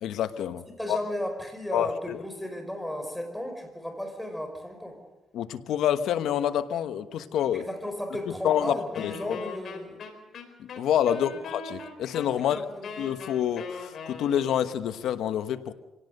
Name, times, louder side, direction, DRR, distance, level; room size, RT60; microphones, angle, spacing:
voice 1, 0.0-0.6 0.9-1.0 1.7-2.2 5.3-7.6 8.4-9.4 10.8-12.6 13.0-15.7, left 10 dB, 80° left, 11 dB, 1.1 m, -27 dB
voice 2, 0.7-5.0 7.5-10.1 11.1-11.2 12.4-12.9, left 1 dB, 5° left, 4 dB, 5.4 m, -35 dB
Wind instrument woodwind instrument, 8.9-14.8, left 5 dB, 60° left, 4.2 m, -41 dB
25.5 x 17.5 x 6.6 m, 1.1 s
cardioid pair, 95°, 0 cm